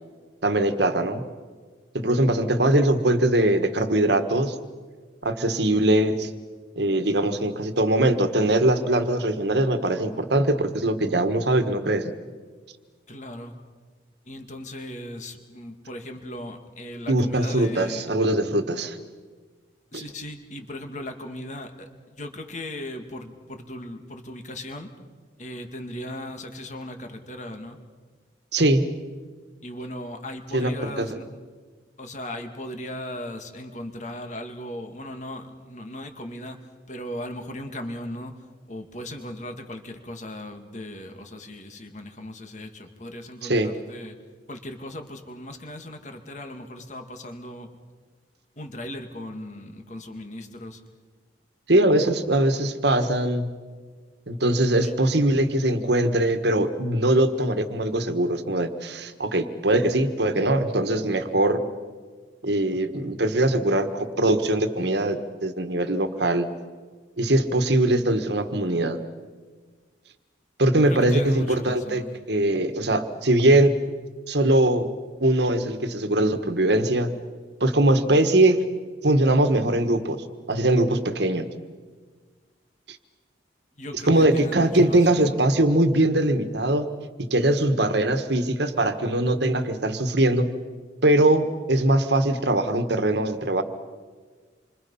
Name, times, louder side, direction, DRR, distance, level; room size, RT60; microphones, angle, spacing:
voice 1, 0.4-1.2 1.9-4.5 5.2-6.3 6.8-12.0 17.1-19.0 19.9-20.0 28.5-28.8 30.5-31.1 43.4-43.7 51.7-53.5 54.3-61.6 62.4-66.5 67.2-69.0 70.6-72.0 72.3-73.7 74.3-74.9 75.2-77.1 77.6-78.6 79.0-81.5 84.1-86.9 87.3-90.5 91.0-93.6, right 1 dB, 65° right, 9 dB, 1.6 m, -21 dB
voice 2, 13.1-13.6 14.3-18.1 19.9-24.9 25.4-27.8 29.6-31.3 32.0-36.6 36.9-38.4 38.7-44.2 44.5-47.7 48.6-50.8 54.8-54.9 70.9-72.1 83.8-85.4, left 1 dB, 40° left, 5 dB, 2.1 m, -37 dB
28.0 x 25.0 x 5.6 m, 1.5 s
head